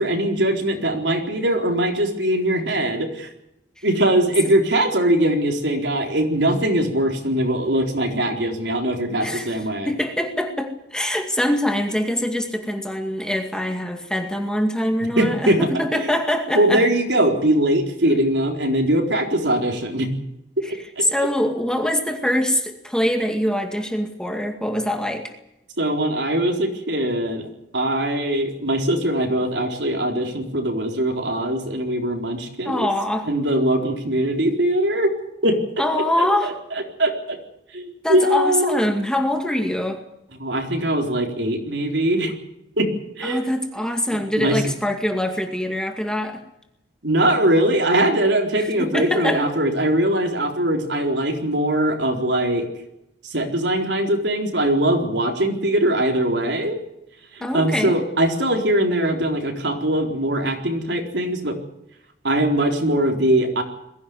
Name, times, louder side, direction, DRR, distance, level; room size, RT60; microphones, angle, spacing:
voice 1, 0.0-3.3 3.8-9.9 15.2-15.6 16.0-16.1 16.5-20.1 20.6-21.0 25.8-27.5 27.7-32.9 33.3-35.1 35.4-35.6 35.9-36.5 37.0-37.4 37.7-38.8 40.4-42.3 42.8-42.9 43.2-43.5 44.1-44.6 47.0-52.7 53.3-56.8 57.3-61.6 62.2-63.6, right 1 dB, 85° right, 2 dB, 4.1 m, -21 dB
voice 2, 9.2-16.8 20.6-20.7 21.0-25.3 32.6-33.3 35.8-36.6 38.0-40.0 43.2-46.4 48.8-49.4 57.4-58.0, left 1 dB, 5° left, 4 dB, 2.2 m, -24 dB
22.0 x 16.0 x 9.7 m, 0.83 s
head